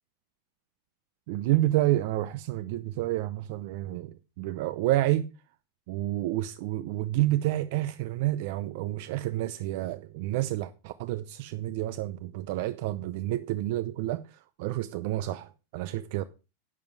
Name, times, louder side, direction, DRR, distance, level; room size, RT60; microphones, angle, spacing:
voice 1, 1.3-5.3 5.9-16.2, right 15 dB, 50° right, 0.6 m, -29 dB
11.0 x 7.1 x 4.7 m
supercardioid pair, 170°, 0 cm